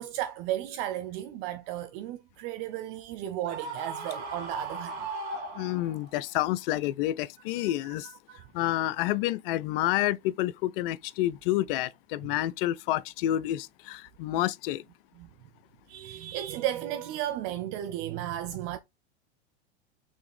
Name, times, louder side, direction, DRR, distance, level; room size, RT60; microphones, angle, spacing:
voice 1, 0.0-5.1 7.6-8.5 14.3-14.4 15.2-15.3 15.9-18.8, right 12 dB, 45° right, 0.5 m, -34 dB
Screaming, 3.5-6.2, right 3 dB, 65° right, 2.1 m, -37 dB
voice 2, 5.5-8.1 8.5-14.8, left 14 dB, 55° left, 0.4 m, -29 dB
4.2 x 3.3 x 3.2 m
hypercardioid pair, 100°, 33 cm